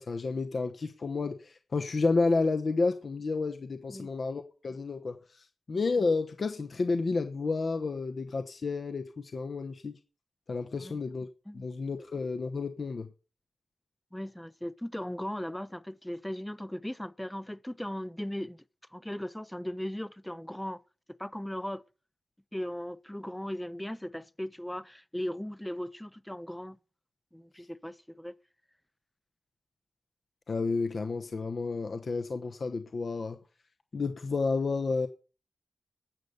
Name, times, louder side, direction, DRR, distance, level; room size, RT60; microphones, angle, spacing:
voice 1, 0.0-10.0 10.5-11.3 11.5-13.1 30.5-33.4 33.9-35.1, left 3 dB, 50° left, 1.0 m, -31 dB
voice 2, 14.1-18.6 18.9-20.8 21.2-21.8 22.5-26.8 27.3-28.3, left 1 dB, 5° left, 0.5 m, -38 dB
12.5 x 7.9 x 6.7 m
wide cardioid pair, 145°, 0 cm